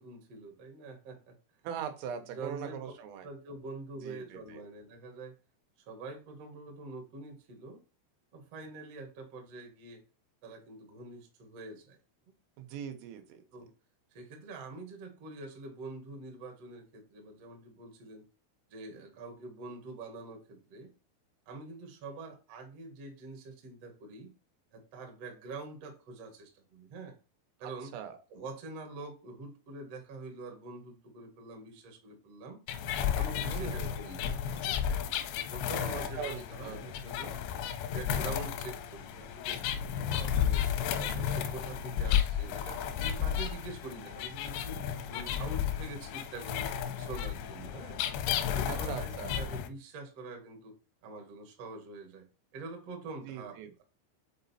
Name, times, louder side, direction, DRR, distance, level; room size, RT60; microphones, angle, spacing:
voice 1, 0.0-1.4 2.3-2.8 3.2-5.3 5.9-7.8 8.3-10.0 10.4-12.0 13.5-13.7 14.1-18.2 18.7-20.9 21.4-24.4 24.7-27.2 27.6-27.9 28.3-32.6 33.1-34.3 34.6-34.8 35.5-37.4 37.8-39.6 39.9-40.7 41.0-46.7 47.0-48.0 48.5-50.7 51.0-53.8, right 3 dB, 75° right, 4 dB, 1.4 m, -45 dB
voice 2, 1.6-3.3 4.0-4.6 12.6-13.4 27.6-28.2 33.5-33.9 35.8-36.9 48.7-49.4 53.3-53.8, right 8 dB, 90° right, 6 dB, 3.6 m, -41 dB
sound 1, 32.7-49.7, left 9 dB, 85° left, 2.5 m, -33 dB
7.7 x 4.1 x 4.2 m, 0.33 s
omnidirectional pair, 5.6 m